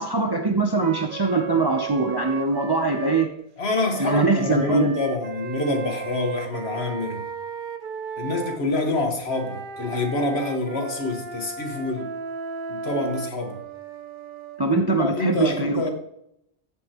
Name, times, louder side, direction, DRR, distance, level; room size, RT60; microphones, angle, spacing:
voice 1, 0.0-3.3 4.0-5.0 14.6-15.9, right 3 dB, 25° right, 4 dB, 0.6 m, -22 dB
Wind instrument woodwind instrument, 0.8-3.3 3.9-8.6 9.2-14.6, right 5 dB, 60° right, 0.8 m, -35 dB
voice 2, 3.6-7.2 8.2-12.1 12.7-13.6 14.9-15.9, left 2 dB, 85° left, 3 dB, 1.8 m, -26 dB
14.0 x 5.5 x 3.0 m, 0.76 s
omnidirectional pair, 1.0 m